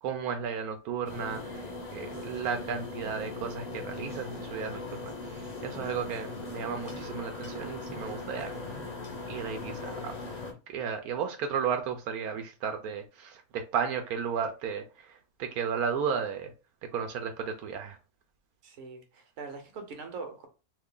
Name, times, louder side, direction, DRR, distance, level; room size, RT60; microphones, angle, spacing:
voice 1, 0.0-8.6 9.3-10.2 10.7-16.5 16.9-18.0, right 7 dB, 80° right, 5 dB, 1.0 m, -34 dB
sound 1, 1.0-10.5, left 3 dB, 40° left, 0.6 m, -39 dB
voice 2, 18.6-20.5, right 4 dB, 60° right, 5 dB, 1.1 m, -42 dB
2.8 x 2.4 x 3.6 m, 0.31 s
omnidirectional pair, 1.6 m